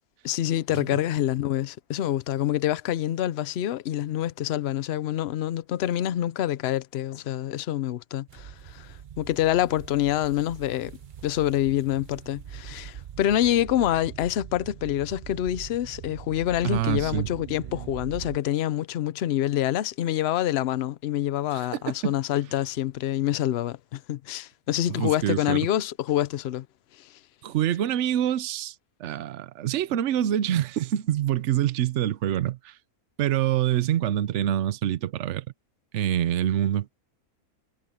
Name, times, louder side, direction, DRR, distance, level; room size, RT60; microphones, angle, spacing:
voice 1, 0.2-11.0 11.2-26.7 27.0-27.1, left 12 dB, 60° left, 0.7 m, -26 dB
sound 1, 8.3-18.4, right 9 dB, 75° right, 0.4 m, -42 dB
voice 2, 16.6-17.3 21.5-22.1 24.9-25.6 27.4-28.7 29.0-32.8 33.2-35.5 35.9-36.9, right 11 dB, 60° right, 0.9 m, -26 dB
omnidirectional pair, 1.6 m